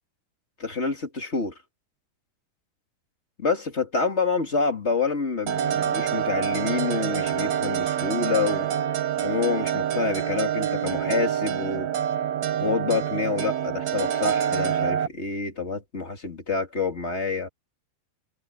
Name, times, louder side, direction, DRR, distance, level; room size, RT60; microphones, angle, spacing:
voice 1, 0.6-1.5 3.4-8.7 9.2-11.9 12.6-17.5, left 4 dB, 25° left, 1.4 m, -27 dB
sound 1, 5.5-15.1, right 9 dB, 70° right, 1.8 m, -26 dB
omnidirectional pair, 4.9 m